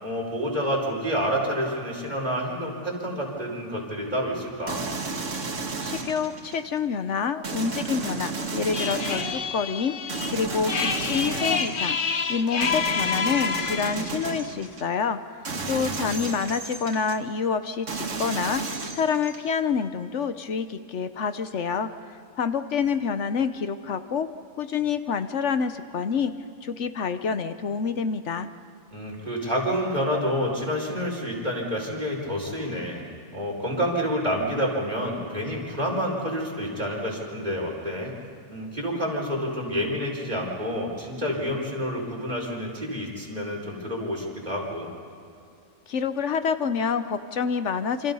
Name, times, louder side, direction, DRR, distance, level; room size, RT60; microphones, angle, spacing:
voice 1, 0.0-4.8 15.5-16.3 28.9-33.0 33.3-38.1 38.5-44.9, equal, 35° right, -2 dB, 5.3 m, -28 dB
sound 1, 4.7-6.7 7.4-9.5 10.1-12.0 12.6-14.8 15.5-17.2 17.9-19.5, right 4 dB, 85° right, 1.9 m, -33 dB
voice 2, 5.8-12.0 12.3-15.2 15.7-18.6 18.9-21.9 22.4-24.3 24.6-26.3 26.6-28.5 45.9-48.1, left 6 dB, 70° left, 10 dB, 1.2 m, -27 dB
sound 2, 8.7-14.1, left 6 dB, 45° left, 1.0 m, -28 dB
28.0 x 26.5 x 5.5 m, 2.5 s
omnidirectional pair, 1.3 m